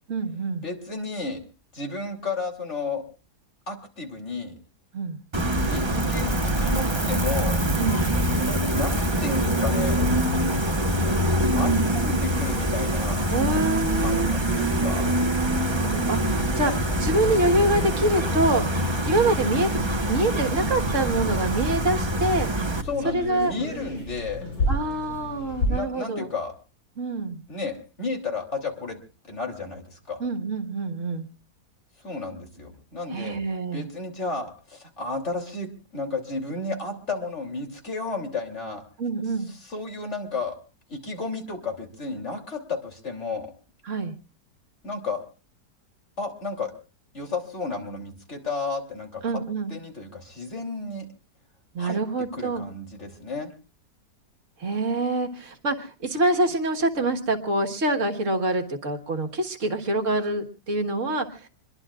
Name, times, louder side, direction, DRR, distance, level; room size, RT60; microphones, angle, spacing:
voice 1, 0.1-0.6 4.9-5.2 7.8-8.1 13.3-14.3 15.7-19.8 20.1-22.5 23.0-23.5 24.7-26.3 27.0-27.4 30.2-31.3 33.1-33.9 39.0-39.5 43.9-44.1 49.2-49.7 51.7-52.6 54.6-61.5, right 2 dB, 50° right, 4 dB, 1.8 m, -26 dB
voice 2, 0.6-1.4 1.7-3.0 3.7-4.5 5.6-7.6 8.7-10.1 11.0-13.2 13.9-15.1 22.8-24.4 25.7-26.5 27.5-29.0 29.3-30.2 32.0-33.4 33.7-38.8 39.6-40.5 40.9-43.5 44.8-45.2 46.2-46.7 47.1-49.2 49.7-51.1 51.8-52.0 52.3-53.5, left 3 dB, 40° left, 3 dB, 3.4 m, -32 dB
Gull seagull, 5.3-22.8, right 1 dB, 20° right, 1.0 m, -24 dB
sound 1, 16.9-25.7, left 1 dB, 85° left, 6.4 m, -34 dB
26.5 x 21.5 x 2.4 m, 0.35 s
omnidirectional pair, 1.8 m